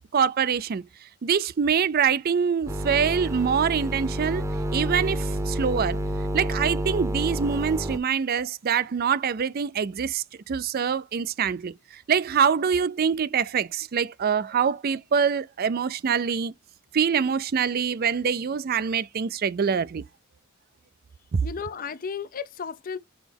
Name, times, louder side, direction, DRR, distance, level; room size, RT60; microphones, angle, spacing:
voice 1, 0.1-0.8 1.2-6.0 6.3-16.5 16.9-20.0, right 7 dB, 45° right, 0.4 m, -25 dB
sound 1, 2.7-8.0, right 1 dB, 15° right, 0.8 m, -29 dB
voice 2, 21.4-23.0, left 6 dB, 40° left, 0.5 m, -34 dB
6.2 x 4.6 x 3.4 m
head